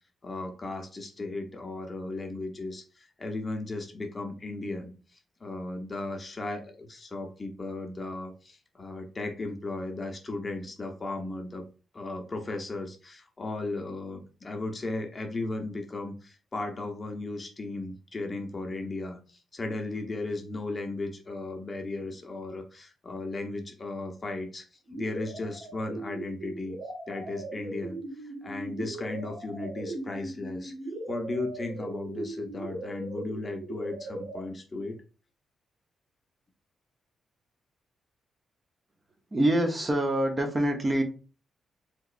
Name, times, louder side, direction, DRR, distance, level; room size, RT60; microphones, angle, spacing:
voice 1, 0.2-4.9 5.4-11.7 11.9-24.6 24.9-26.8 27.1-28.0 28.2-30.7 31.1-35.0, left 2 dB, 25° left, 3 dB, 0.6 m, -36 dB
sound 1, 24.9-34.4, right 2 dB, 75° right, 1.3 m, -39 dB
voice 2, 39.3-41.0, right 1 dB, 25° right, 5 dB, 0.5 m, -25 dB
3.5 x 2.9 x 2.4 m, 0.34 s
cardioid pair, 130°, 0 cm